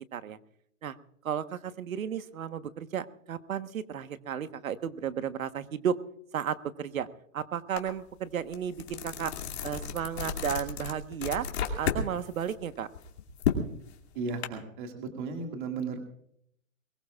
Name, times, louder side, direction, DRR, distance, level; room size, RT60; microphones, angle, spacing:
voice 1, 1.2-6.0 6.3-7.1 7.3-9.3 9.6-11.5 11.8-12.9, right 8 dB, 85° right, 11 dB, 1.3 m, -33 dB
sound 1, 7.8-7.9 8.3-12.1 12.4-14.5, left 7 dB, 50° left, 2.6 m, -32 dB
voice 2, 14.1-16.0, right 4 dB, 35° right, 4 dB, 2.2 m, -35 dB
22.0 x 20.5 x 2.4 m, 0.70 s
hypercardioid pair, 170°, 40 cm